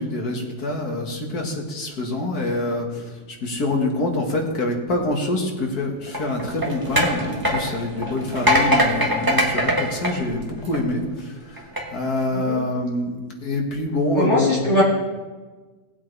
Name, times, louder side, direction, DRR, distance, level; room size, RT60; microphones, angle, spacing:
voice 1, 0.0-3.0 3.4-14.7, left 2 dB, 65° left, 1 dB, 2.2 m, -25 dB
sound 1, 6.1-11.0 11.6-11.8, equal, 15° right, 1.3 m, -22 dB
voice 2, 14.1-14.8, equal, 15° left, -6 dB, 3.6 m, -21 dB
18.5 x 8.4 x 3.4 m, 1.3 s
omnidirectional pair, 1.8 m